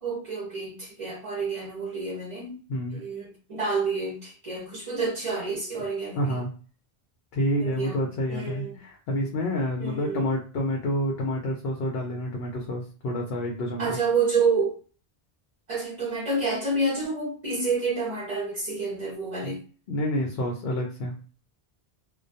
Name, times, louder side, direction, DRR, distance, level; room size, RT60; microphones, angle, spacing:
voice 1, 0.0-2.6 2.9-6.4 7.6-8.0 8.3-8.8 9.8-10.3 13.8-14.8 15.7-19.6, right 4 dB, 40° right, 0.6 m, -29 dB
voice 2, 6.2-6.5 7.3-14.0 19.4-19.5 19.9-21.1, equal, 75° left, 0.8 m, -28 dB
2.2 x 2.1 x 2.6 m
omnidirectional pair, 1.0 m